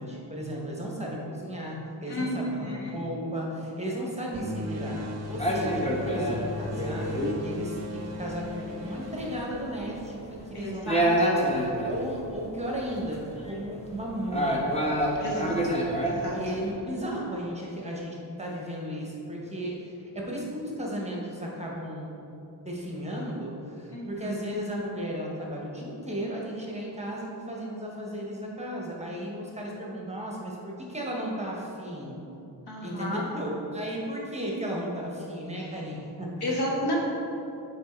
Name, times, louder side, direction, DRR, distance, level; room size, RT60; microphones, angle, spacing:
voice 1, 0.0-5.0 5.3-7.1 7.4-11.0 11.8-14.7 15.1-15.6 16.3-22.2 22.6-32.2 32.8-36.6, equal, 15° right, -3 dB, 0.9 m, -35 dB
voice 2, 2.1-3.0 10.5-11.4 15.2-15.6 16.0-16.4 23.9-24.3 32.7-33.2 36.4-37.0, left 1 dB, 65° left, -3 dB, 1.3 m, -32 dB
Ship Horn - Fog Horn - Cruise Ship Grand Princess, 4.3-10.4, left 1 dB, 40° right, 0.6 m, -37 dB
sound 1, 5.3-16.7, right 1 dB, 15° left, 0.8 m, -28 dB
6.0 x 4.1 x 4.3 m, 2.9 s
wide cardioid pair, 105°, 42 cm